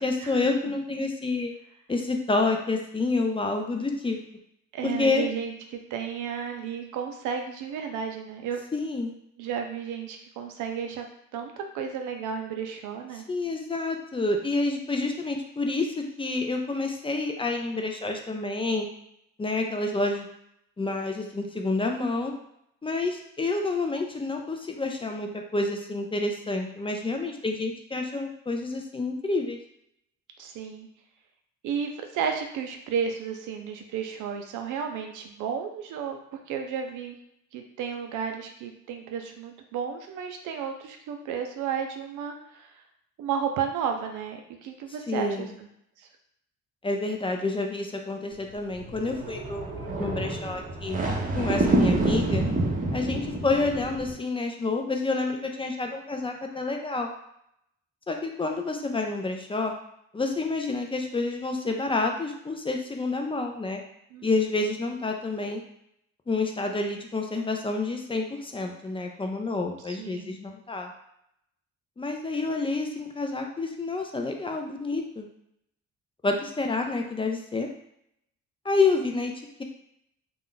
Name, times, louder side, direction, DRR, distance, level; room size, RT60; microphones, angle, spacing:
voice 1, 0.0-1.5 1.9-4.2 4.8-5.2 8.7-9.1 13.3-18.9 19.4-20.3 20.8-22.3 22.8-29.6 45.1-45.5 46.8-51.0 51.3-52.4 52.9-57.1 58.1-59.7 60.1-63.8 64.2-65.6 66.3-70.9 72.0-75.3 76.2-77.7 78.6-79.3, left 3 dB, 20° left, 3 dB, 0.4 m, -28 dB
voice 2, 4.7-8.6 9.4-11.0 11.3-13.2 30.4-30.9 31.6-36.2 36.5-37.2 37.5-42.8 43.2-45.7 46.0-46.1 64.1-64.6 69.8-70.4, right 7 dB, 85° right, 4 dB, 0.5 m, -33 dB
sound 1, 48.5-54.1, right 2 dB, 25° right, 0.6 m, -27 dB
2.4 x 2.0 x 3.8 m, 0.75 s
cardioid pair, 90°, 30 cm